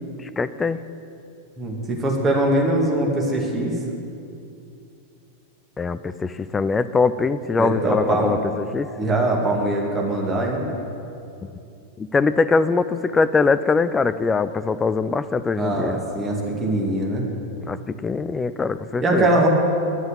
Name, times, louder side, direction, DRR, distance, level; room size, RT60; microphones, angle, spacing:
voice 1, 0.2-0.8 5.8-8.9 12.0-15.9 17.7-19.3, left 4 dB, 15° left, 13 dB, 0.4 m, -22 dB
voice 2, 1.6-3.8 7.6-8.3 9.0-10.6 15.6-17.2 19.0-19.5, right 2 dB, 20° right, -1 dB, 2.2 m, -22 dB
11.0 x 7.9 x 7.3 m, 2.6 s
figure-of-eight pair, 90°, 0 cm